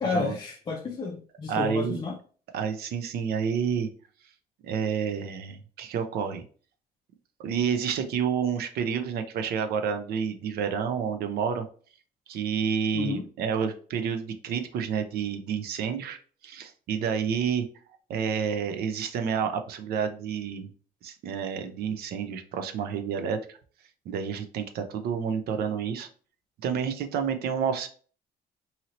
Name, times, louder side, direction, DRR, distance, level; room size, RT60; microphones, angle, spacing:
voice 1, 0.0-2.2 12.9-13.2, left 4 dB, 25° left, 0 dB, 0.4 m, -30 dB
voice 2, 1.5-2.0 2.5-3.9 4.6-6.4 7.4-11.7 12.3-16.2 16.4-17.7 18.1-20.7 21.0-23.6 24.1-26.1 26.6-27.9, right 7 dB, 70° right, 7 dB, 0.5 m, -29 dB
2.8 x 2.7 x 2.8 m, 0.42 s
cardioid pair, 110°, 17 cm